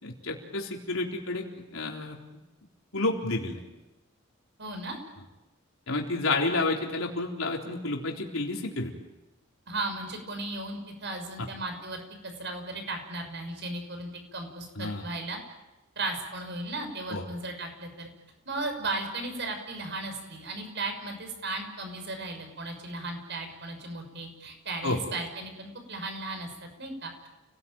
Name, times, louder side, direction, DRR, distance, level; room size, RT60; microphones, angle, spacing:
voice 1, 0.0-2.2 2.9-3.6 5.9-8.9 11.4-11.5 14.8-15.0 17.1-17.2 24.8-25.0, left 2 dB, 90° left, 0 dB, 4.0 m, -30 dB
voice 2, 4.6-5.0 9.7-15.4 16.0-18.1 18.5-27.3, right 2 dB, 60° right, 6 dB, 6.1 m, -36 dB
30.0 x 19.0 x 9.1 m, 1.0 s
head